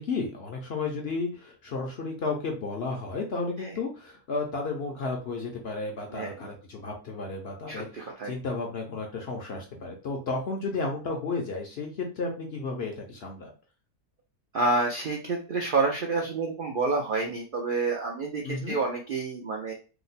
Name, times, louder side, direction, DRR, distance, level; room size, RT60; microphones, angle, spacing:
voice 1, 0.0-13.5 18.4-18.8, left 3 dB, 60° left, 1 dB, 0.7 m, -33 dB
voice 2, 6.1-6.5 7.7-8.3 14.5-19.7, right 3 dB, 80° right, 1 dB, 0.4 m, -29 dB
2.9 x 2.1 x 4.0 m, 0.35 s
omnidirectional pair, 1.6 m